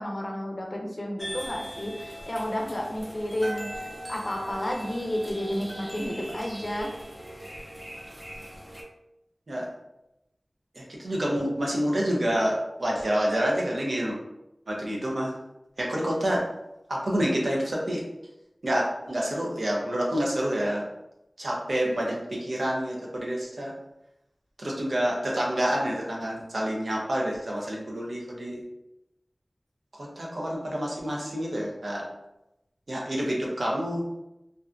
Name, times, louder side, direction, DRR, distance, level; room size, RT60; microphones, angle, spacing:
voice 1, 0.0-6.9, equal, 45° left, 0 dB, 0.5 m, -31 dB
sound 1, 1.2-8.8, equal, 15° right, 0.5 m, -40 dB
voice 2, 10.7-14.2 14.7-15.3 15.8-16.5 16.9-18.0 18.6-20.8 21.4-23.7 24.6-28.6 30.0-32.0 32.9-34.0, equal, 80° right, -3 dB, 0.6 m, -28 dB
2.6 x 2.1 x 2.4 m, 0.90 s
wide cardioid pair, 45°, 0 cm